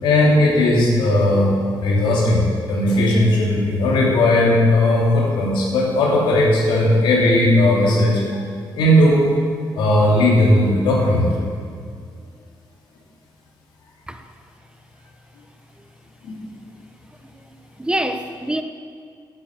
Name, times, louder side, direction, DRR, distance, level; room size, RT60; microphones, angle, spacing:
voice 1, 0.0-8.2 8.7-9.3 9.7-11.3 16.2-16.3, left 1 dB, 90° left, -3 dB, 2.7 m, -17 dB
voice 2, 17.4-18.6, right 1 dB, 10° right, 7 dB, 0.9 m, -26 dB
9.7 x 8.5 x 8.0 m, 2.2 s
cardioid pair, 70°, 8 cm